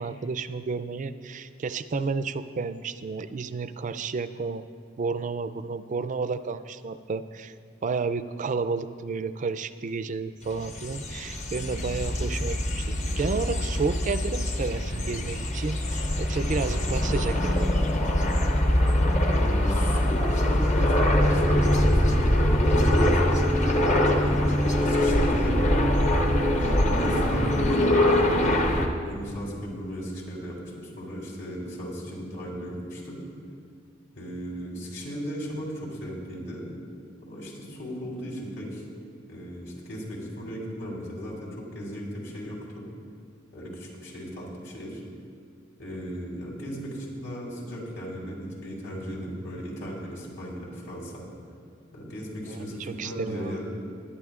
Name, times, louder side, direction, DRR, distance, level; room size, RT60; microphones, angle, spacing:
voice 1, 0.0-4.6 5.0-7.5 7.8-17.8 52.5-53.6, right 4 dB, 40° right, 13 dB, 0.4 m, -31 dB
sound 1, 10.5-28.9, left 1 dB, 40° left, 0.9 m, -23 dB
voice 2, 19.3-23.6 24.2-25.9 26.6-28.2 28.6-33.2 34.1-36.6 37.2-38.8 39.3-42.8 43.5-45.0 45.8-51.3 51.9-53.7, equal, 70° left, -4 dB, 3.5 m, -36 dB
20.0 x 11.5 x 2.4 m, 2.2 s
head